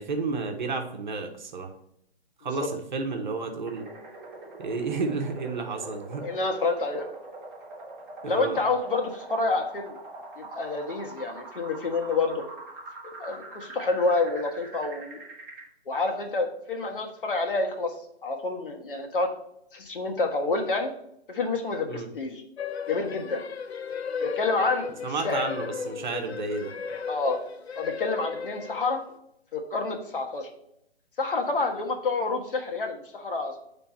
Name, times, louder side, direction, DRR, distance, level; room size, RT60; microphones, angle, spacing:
voice 1, 0.0-1.7 2.4-3.9 4.6-6.2 8.2-8.6 21.9-22.1 25.0-26.7, right 3 dB, 45° right, 4 dB, 1.0 m, -31 dB
sound 1, 3.7-15.7, right 2 dB, 15° right, 1.0 m, -43 dB
voice 2, 6.2-7.1 8.2-10.0 10.4-12.4 13.2-15.2 15.9-17.9 18.2-19.3 19.7-20.9 21.3-22.4 22.9-23.4 24.2-24.9 25.2-25.4 27.1-27.4 27.7-29.0 29.5-30.5 31.2-33.6, left 3 dB, 55° left, 4 dB, 1.3 m, -28 dB
sound 2, 22.6-29.1, left 6 dB, 80° left, 0.6 m, -35 dB
7.6 x 3.4 x 4.2 m, 0.75 s
figure-of-eight pair, 150°, 32 cm